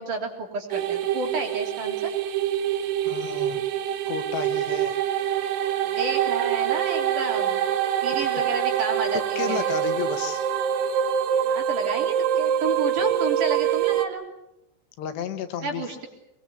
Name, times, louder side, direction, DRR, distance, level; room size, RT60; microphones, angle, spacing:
voice 1, 0.0-2.1 5.8-7.6 8.0-9.8 11.4-14.3 15.6-16.1, right 4 dB, 50° right, 1 dB, 4.8 m, -31 dB
sound 1, 0.7-14.1, right 9 dB, 75° right, 3.3 m, -25 dB
voice 2, 3.1-3.7 4.1-5.0 9.4-10.4 15.0-15.9, left 7 dB, 80° left, 8 dB, 3.7 m, -32 dB
25.5 x 21.5 x 8.4 m, 0.87 s
omnidirectional pair, 4.9 m